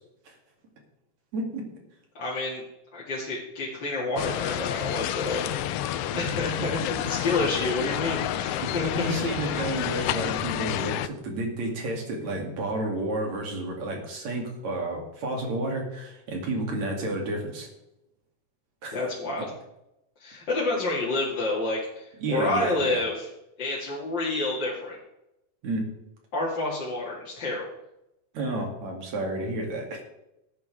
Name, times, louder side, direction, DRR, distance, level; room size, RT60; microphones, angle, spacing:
voice 1, 1.3-1.7 6.0-6.2 6.6-6.7 7.1-7.2 8.6-17.7 18.8-19.0 22.2-23.0 25.6-25.9 28.3-30.0, right 2 dB, 70° right, 1 dB, 3.8 m, -31 dB
voice 2, 2.1-2.6 2.9-5.5 6.2-9.6 18.9-19.5 20.2-23.3 23.6-25.0 26.3-27.7, left 2 dB, 40° left, -5 dB, 2.5 m, -29 dB
sound 1, 4.2-11.1, left 12 dB, 80° left, 1.5 m, -29 dB
17.0 x 9.5 x 3.4 m, 0.89 s
omnidirectional pair, 3.3 m